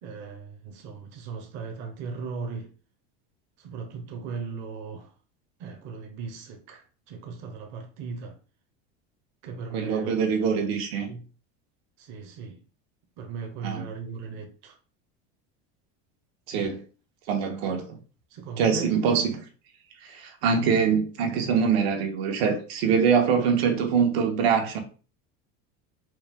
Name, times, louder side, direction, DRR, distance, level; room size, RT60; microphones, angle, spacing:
voice 1, 0.0-2.7 3.6-5.1 5.6-8.4 9.4-10.1 11.1-11.2 12.0-12.6 13.2-14.8 16.5-16.8 18.3-19.0, right 5 dB, 40° right, 0.6 m, -37 dB
voice 2, 9.7-11.1 13.6-13.9 16.5-16.8 17.3-18.0 18.6-19.4 20.0-24.8, right 6 dB, 85° right, 1.2 m, -24 dB
4.3 x 2.2 x 3.3 m
cardioid pair, 175°, 31 cm